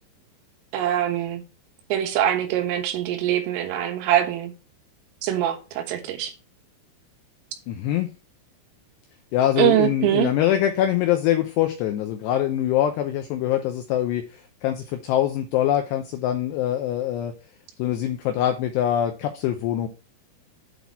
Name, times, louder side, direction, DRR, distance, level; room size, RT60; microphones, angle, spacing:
voice 1, 0.7-1.4 1.9-4.5 5.2-6.3 9.6-10.3, right 12 dB, 85° right, 3.8 m, -23 dB
voice 2, 7.7-8.1 9.3-14.2 14.6-17.3 17.8-19.9, left 11 dB, 90° left, 2.4 m, -23 dB
8.5 x 4.1 x 4.6 m
omnidirectional pair, 5.7 m